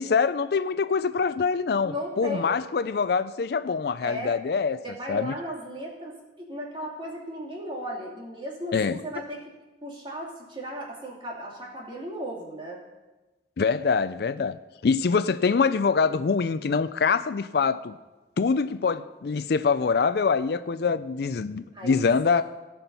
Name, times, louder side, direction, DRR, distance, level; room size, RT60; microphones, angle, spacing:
voice 1, 0.0-4.8 5.1-5.3 8.7-9.0 13.6-17.9 18.4-22.4, left 5 dB, 65° left, 0.4 m, -24 dB
voice 2, 1.8-2.6 4.0-4.4 4.8-9.4 9.8-12.8 21.7-22.4, equal, 30° right, 2.5 m, -36 dB
17.5 x 5.9 x 5.4 m
head